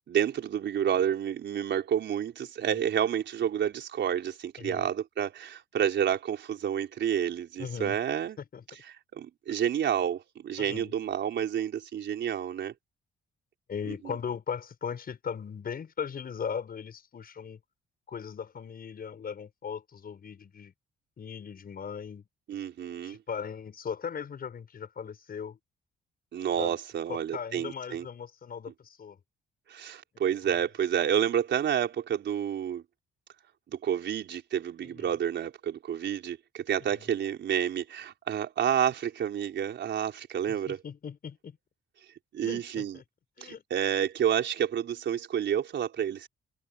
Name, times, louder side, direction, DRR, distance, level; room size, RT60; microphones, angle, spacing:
voice 1, 0.1-8.4 8.9-12.7 13.9-14.0 22.5-23.2 26.3-28.0 29.7-32.8 33.7-40.8 42.3-43.0 43.4-46.3, right 9 dB, 65° right, 4.4 m, -29 dB
voice 2, 7.6-8.0 8.5-8.6 10.6-10.9 13.7-17.6 18.1-20.7 21.2-22.2 23.0-25.6 26.6-26.7 27.1-29.2 30.4-30.6 35.0-35.2 36.9-37.1 40.7-41.6 42.4-43.0 43.4-43.6, left 7 dB, 50° left, 6.1 m, -38 dB
cardioid pair, 90°, 20 cm